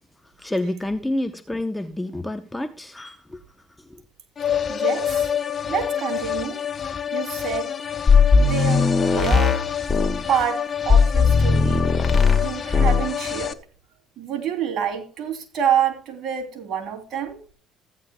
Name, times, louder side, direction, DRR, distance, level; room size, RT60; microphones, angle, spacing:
voice 1, 0.4-3.4 3.8-4.0, left 1 dB, 10° left, 0.8 m, -29 dB
sound 1, 4.4-13.5, left 9 dB, 40° left, 0.8 m, -28 dB
voice 2, 4.7-5.3 5.7-6.6 7.1-7.7 8.4-9.6 9.9-10.0 10.3-11.9 12.3-13.6 14.2-17.4, right 8 dB, 55° right, 3.2 m, -27 dB
sound 2, 8.1-10.2 10.9-12.5 12.7-13.1, left 5 dB, 25° left, 2.4 m, -17 dB
15.5 x 9.4 x 2.3 m
supercardioid pair, 70°, 0 cm